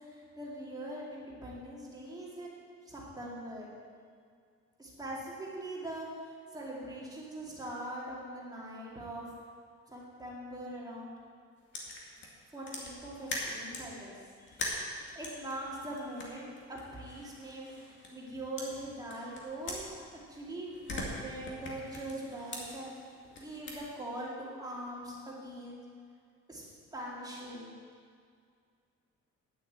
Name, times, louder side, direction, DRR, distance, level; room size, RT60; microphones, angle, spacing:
voice 1, 0.0-3.7 4.8-9.3 9.9-11.1 12.5-22.9 23.4-25.8 26.5-26.6 26.9-27.8, right 1 dB, 15° right, -4 dB, 2.3 m, -42 dB
sound 1, 11.7-13.9 14.5-18.3 18.6-20.4 20.7-23.8, left 2 dB, 40° left, 2.2 m, -42 dB
9.9 x 8.3 x 8.1 m, 2.1 s
cardioid pair, 165°, 29 cm